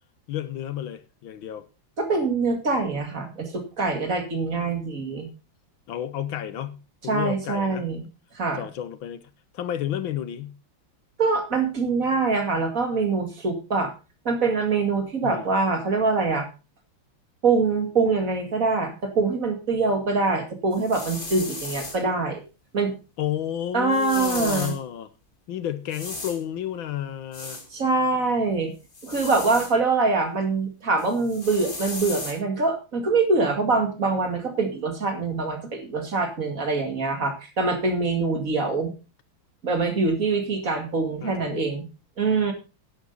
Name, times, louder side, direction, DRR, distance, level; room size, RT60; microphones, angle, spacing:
voice 1, 0.3-1.7 5.9-7.8 8.6-9.2 9.5-10.6 15.2-15.5 23.2-25.1 25.5-27.6 41.2-41.7, left 11 dB, 80° left, 1.7 m, -31 dB
voice 2, 2.0-5.3 7.1-8.0 8.3-8.6 11.2-13.9 14.2-16.5 17.4-22.4 22.7-23.0 23.7-24.7 27.7-28.7 29.0-38.9 39.6-41.9 42.2-42.5, right 3 dB, 40° right, 2.6 m, -24 dB
sound 1, 20.7-22.0 23.9-24.8 25.9-26.4 27.3-27.7 28.9-29.7 31.0-32.3, left 2 dB, 25° left, 2.1 m, -35 dB
11.0 x 11.0 x 4.0 m
omnidirectional pair, 2.2 m